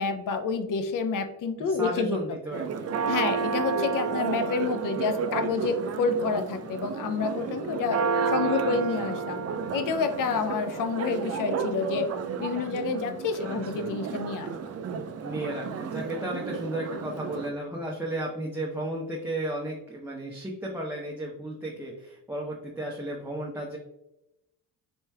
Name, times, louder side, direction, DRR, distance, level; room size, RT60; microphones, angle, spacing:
voice 1, 0.0-2.2 3.1-9.4 9.7-12.1 12.4-14.5, left 5 dB, 45° left, 8 dB, 0.6 m, -29 dB
voice 2, 1.7-2.9 8.4-9.1 13.4-13.9 15.2-23.8, right 1 dB, 5° right, -4 dB, 0.8 m, -34 dB
Church bell, 2.5-17.5, right 5 dB, 35° right, 0.5 m, -31 dB
4.3 x 3.1 x 2.3 m, 0.86 s
hypercardioid pair, 60°, 48 cm